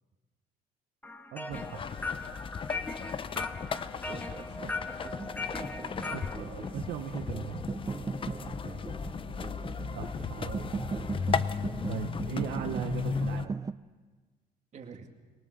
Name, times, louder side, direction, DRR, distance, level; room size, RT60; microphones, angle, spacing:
sound 1, 1.0-6.4, left 3 dB, 10° left, 1.5 m, -39 dB
voice 1, 1.3-1.9 6.1-7.6 9.9-11.0 11.9-13.5, right 11 dB, 75° right, 6 dB, 1.0 m, -39 dB
sound 2, 1.5-13.5, left 6 dB, 30° left, 0.7 m, -36 dB
voice 2, 3.9-5.3 8.2-8.9 14.7-15.1, right 6 dB, 45° right, 4 dB, 2.4 m, -48 dB
sound 3, 5.5-13.7, right 4 dB, 20° right, 0.6 m, -39 dB
22.5 x 19.0 x 6.6 m, 1.3 s
cardioid pair, 110°, 17 cm